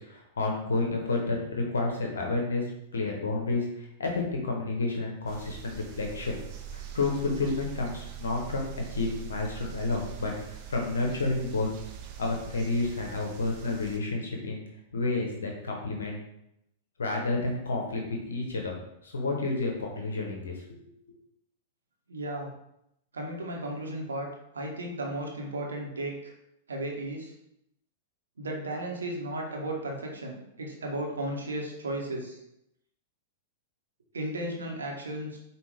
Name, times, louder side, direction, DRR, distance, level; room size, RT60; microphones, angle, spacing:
voice 1, 0.0-2.6 2.9-6.4 6.7-11.7 12.2-14.6 14.9-16.2 17.0-18.7 19.0-20.6, left 3 dB, 75° left, 1 dB, 0.8 m, -30 dB
sound 1, 5.3-14.0, right 9 dB, 45° right, 0.6 m, -43 dB
voice 2, 22.1-22.5 23.1-24.3 24.5-26.3 26.7-27.3 28.4-32.4 34.1-35.4, right 1 dB, 80° right, 0 dB, 0.9 m, -34 dB
5.2 x 2.4 x 3.3 m, 0.80 s
figure-of-eight pair, 100°, 0 cm